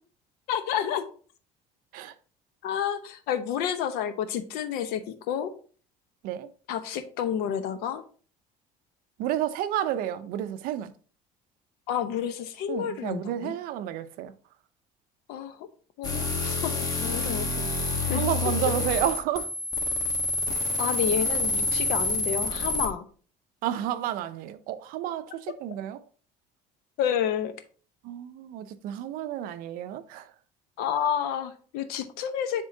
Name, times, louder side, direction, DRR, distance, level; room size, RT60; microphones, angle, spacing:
voice 1, 0.5-1.0 2.6-5.5 6.7-8.0 11.9-13.6 15.3-15.7 16.0-17.7 18.1-18.2 20.8-23.0 27.0-27.5 30.8-32.6, left 9 dB, 75° left, 0.8 m, -30 dB
voice 2, 9.2-10.9 12.7-14.3 18.1-19.5 23.6-26.0 28.0-30.3, right 11 dB, 65° right, 0.5 m, -31 dB
sound 1, 16.0-22.9, left 2 dB, 25° left, 1.1 m, -28 dB
9.7 x 3.7 x 2.7 m
cardioid pair, 160°, 16 cm